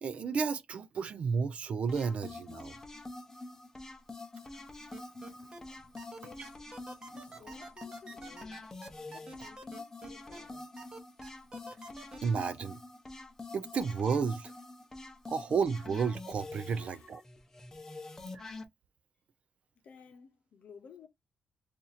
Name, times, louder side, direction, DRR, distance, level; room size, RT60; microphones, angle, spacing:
voice 1, 0.0-2.8 12.2-12.8 13.5-14.5 15.3-17.2 18.4-18.5, right 5 dB, 50° right, 0.4 m, -32 dB
sound 1, 1.9-18.6, left 2 dB, 15° left, 0.7 m, -46 dB
sound 2, 4.9-5.6 6.0-10.4 10.8-12.2, right 3 dB, 30° right, 0.8 m, -48 dB
voice 2, 6.2-6.5 7.1-8.7 9.1-10.8 16.6-17.1 19.8-21.1, left 6 dB, 60° left, 0.8 m, -55 dB
2.8 x 2.5 x 4.1 m
wide cardioid pair, 155°, 3 cm